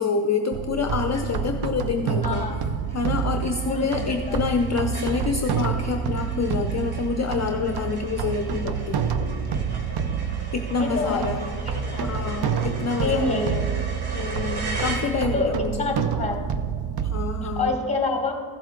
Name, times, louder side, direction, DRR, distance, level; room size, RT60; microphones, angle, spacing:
voice 1, 0.0-2.5 2.9-9.0 10.5-11.5 12.0-13.5 14.1-15.9 17.0-17.8, left 5 dB, 35° left, 5 dB, 0.5 m, -27 dB
sound 1, 0.5-17.7, right 7 dB, 50° right, 0.6 m, -28 dB
sound 2, 1.1-1.6 1.9-2.0 2.3-15.6, right 2 dB, 90° right, 1.7 m, -39 dB
voice 2, 2.2-2.5 3.6-4.4 10.7-11.3 11.6-12.1 13.0-13.6 15.3-15.5 15.8-16.4 17.4-18.3, left 3 dB, 15° left, 3 dB, 1.3 m, -27 dB
15.0 x 7.7 x 3.7 m, 2.4 s
wide cardioid pair, 135°, 48 cm